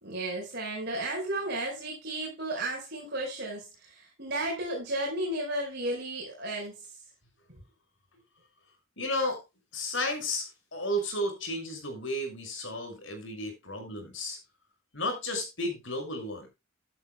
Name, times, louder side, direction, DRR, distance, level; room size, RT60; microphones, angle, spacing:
voice 1, 0.0-6.7, right 1 dB, 55° right, -2 dB, 4.9 m, -33 dB
voice 2, 9.0-9.4 9.7-14.4 14.9-16.5, left 1 dB, 70° left, 6 dB, 6.0 m, -33 dB
14.5 x 11.0 x 2.2 m, 0.24 s
head